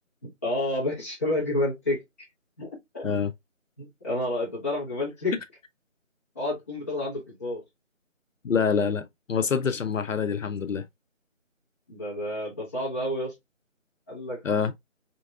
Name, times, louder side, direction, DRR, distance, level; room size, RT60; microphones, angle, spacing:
voice 1, 0.4-2.0 2.6-2.7 2.9-3.1 3.8-5.3 6.3-7.6 11.9-13.3 14.1-14.4, left 1 dB, 10° left, 1.4 m, -29 dB
voice 2, 8.4-10.9 14.4-14.7, left 6 dB, 75° left, 0.5 m, -26 dB
3.9 x 3.5 x 2.2 m
figure-of-eight pair, 165°, 39 cm